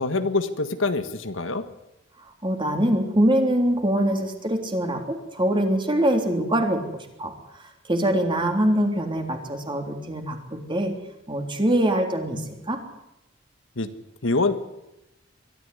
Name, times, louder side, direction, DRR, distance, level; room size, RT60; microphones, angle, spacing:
voice 1, 0.0-1.6 13.8-13.9 14.2-14.6, left 3 dB, 70° left, 10 dB, 1.6 m, -25 dB
voice 2, 2.4-10.9 11.3-12.8, right 1 dB, 25° right, 4 dB, 3.5 m, -24 dB
23.0 x 13.5 x 9.6 m, 0.89 s
head